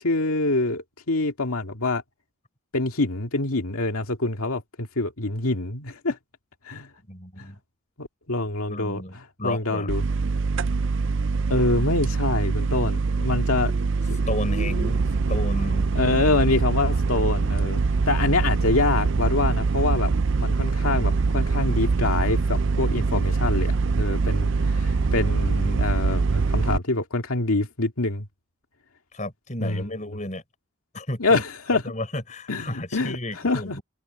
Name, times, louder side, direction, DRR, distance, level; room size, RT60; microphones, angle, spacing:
voice 1, 0.0-2.0 2.7-6.2 6.7-6.9 7.4-7.5 8.0-10.0 11.5-13.7 15.9-17.8 18.1-20.1 20.4-28.3 29.6-29.8 31.2-31.8 32.5-33.8, left 2 dB, 85° left, 2.1 m, -25 dB
voice 2, 7.1-7.6 8.7-9.9 14.3-16.0 29.1-30.4 30.9-31.4 31.7-33.8, left 1 dB, 35° left, 5.7 m, -33 dB
sound 1, 9.9-26.8, right 4 dB, 55° right, 0.5 m, -23 dB
head